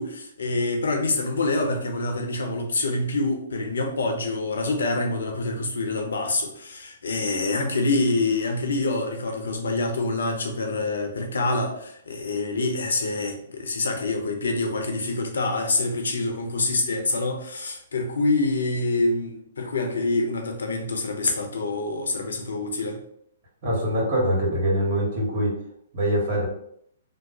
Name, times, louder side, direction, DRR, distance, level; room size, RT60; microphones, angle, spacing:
voice 1, 0.0-23.0, left 2 dB, 80° left, 3 dB, 0.7 m, -26 dB
voice 2, 23.6-25.5 25.9-26.5, equal, 35° right, -4 dB, 1.5 m, -23 dB
3.0 x 2.0 x 3.8 m, 0.68 s
hypercardioid pair, 145°, 0 cm